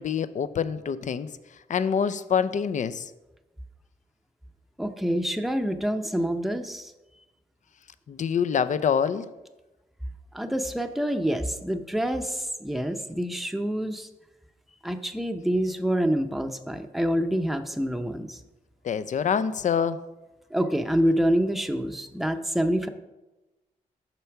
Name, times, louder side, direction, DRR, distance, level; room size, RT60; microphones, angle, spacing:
voice 1, 0.0-1.3 1.7-3.1 8.1-9.3 18.8-20.0, left 7 dB, 55° left, 14 dB, 0.5 m, -26 dB
voice 2, 4.8-6.9 10.3-14.1 14.8-18.4 20.5-22.9, equal, ahead, 6 dB, 0.7 m, -27 dB
6.9 x 4.4 x 5.9 m, 1.0 s
cardioid pair, 55°, 15 cm